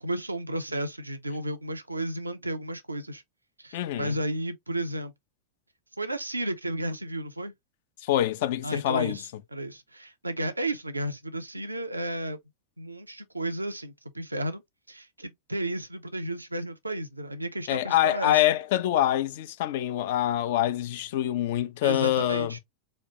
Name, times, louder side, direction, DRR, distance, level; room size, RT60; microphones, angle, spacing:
voice 1, 0.0-3.2 3.6-5.1 6.0-7.5 8.6-12.4 12.8-14.6 14.9-18.4 21.8-22.6, right 1 dB, 85° right, 0.6 m, -33 dB
voice 2, 3.7-4.1 8.0-9.2 17.7-22.6, left 13 dB, 50° left, 0.4 m, -25 dB
4.3 x 2.4 x 2.8 m
figure-of-eight pair, 90°, 0 cm